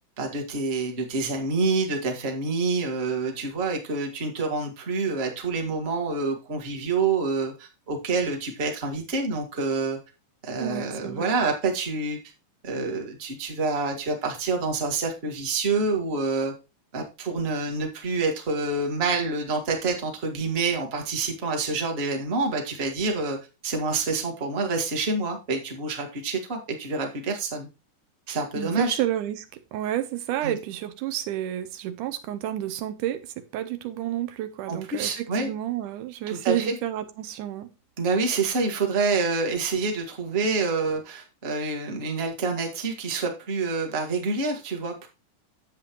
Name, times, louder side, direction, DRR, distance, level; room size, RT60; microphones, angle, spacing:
voice 1, 0.2-10.0 10.4-12.2 12.6-16.5 16.9-23.4 23.6-27.7 28.3-29.0 30.4-30.5 34.7-35.5 36.3-36.7 38.0-45.1, right 3 dB, 25° right, 1.4 m, -27 dB
voice 2, 10.6-11.3 28.6-37.7, right 12 dB, 80° right, 2.2 m, -30 dB
9.0 x 7.6 x 3.0 m
omnidirectional pair, 3.7 m